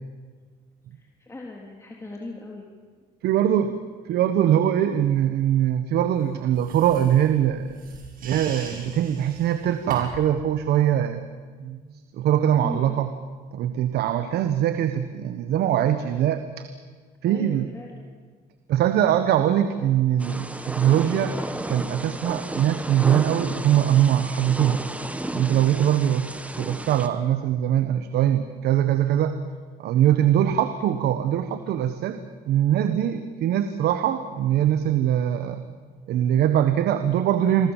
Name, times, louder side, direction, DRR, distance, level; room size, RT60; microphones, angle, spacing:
voice 1, 0.9-2.7 3.4-3.5 12.6-13.1 17.3-18.0 25.9-26.1 30.4-30.6, left 2 dB, 15° left, 0 dB, 3.5 m, -39 dB
voice 2, 3.2-3.7 4.1-7.8 8.2-11.2 11.6-11.8 12.1-13.1 13.5-16.7 17.2-17.7 18.7-21.4 21.7-24.8 25.3-26.3 26.6-29.4 29.8-32.2 32.5-35.6 36.1-37.7, right 10 dB, 75° right, 10 dB, 1.4 m, -22 dB
sound 1, 6.5-10.4, right 4 dB, 60° right, 7.1 m, -41 dB
Thunder / Rain, 20.2-27.1, right 1 dB, 10° right, 1.7 m, -33 dB
28.5 x 22.0 x 7.5 m, 1.5 s
cardioid pair, 110°, 17 cm